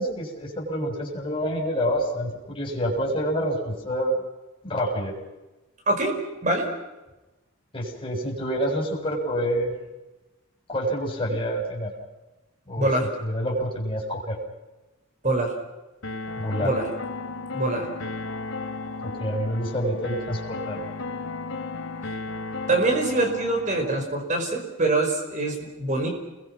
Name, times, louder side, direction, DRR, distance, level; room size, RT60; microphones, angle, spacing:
voice 1, 0.0-4.2 4.6-5.1 7.7-9.8 10.7-11.9 12.7-12.9 13.2-14.4 16.4-16.7 19.0-20.9, equal, 25° left, -2 dB, 6.5 m, -27 dB
sound 1, 16.0-24.0, left 3 dB, 90° left, 2.9 m, -34 dB
voice 2, 17.5-17.9 22.7-26.1, right 2 dB, 40° right, 3 dB, 5.2 m, -24 dB
29.5 x 22.0 x 6.1 m, 1.1 s
head